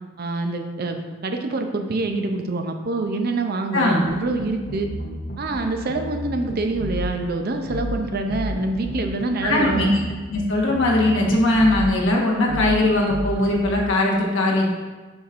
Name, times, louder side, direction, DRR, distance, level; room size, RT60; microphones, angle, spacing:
voice 1, 0.2-4.9 5.4-10.0, right 2 dB, 50° right, 5 dB, 0.6 m, -26 dB
voice 2, 3.7-4.1 9.4-10.0 10.3-14.7, left 1 dB, 65° left, -3 dB, 1.3 m, -20 dB
sound 1, 4.1-5.6 5.9-7.1 7.7-8.0 8.3-10.4 10.7-11.9 12.5-12.8 13.1-13.7, left 1 dB, 45° left, 0.7 m, -31 dB
7.0 x 5.7 x 2.5 m, 1.3 s
head